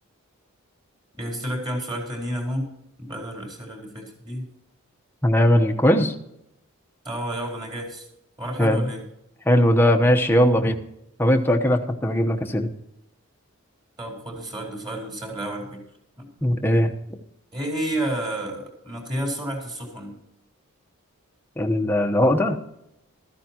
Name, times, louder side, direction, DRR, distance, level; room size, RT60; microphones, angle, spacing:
voice 1, 1.2-2.7 3.0-4.5 7.0-8.1 8.4-9.0 14.0-15.8 16.2-16.3 17.5-20.2, right 1 dB, 20° right, 0 dB, 4.1 m, -30 dB
voice 2, 5.2-6.1 8.6-8.8 9.5-10.8 11.2-12.7 16.4-16.9 21.6-22.6, equal, 10° left, 3 dB, 1.0 m, -19 dB
15.0 x 13.5 x 2.9 m, 0.82 s
head